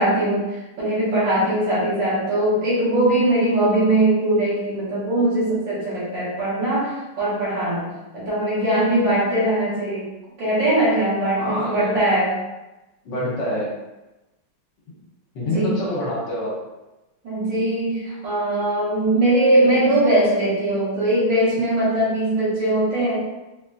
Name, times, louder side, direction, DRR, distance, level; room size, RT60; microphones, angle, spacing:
voice 1, 0.0-10.1 10.4-12.4 15.4-15.9 17.2-23.2, right 1 dB, 65° right, -8 dB, 2.1 m, -21 dB
voice 2, 11.4-11.9 13.0-13.7 15.3-16.5, left 1 dB, 65° left, -5 dB, 1.5 m, -26 dB
4.3 x 3.0 x 2.6 m, 1.0 s
omnidirectional pair, 2.3 m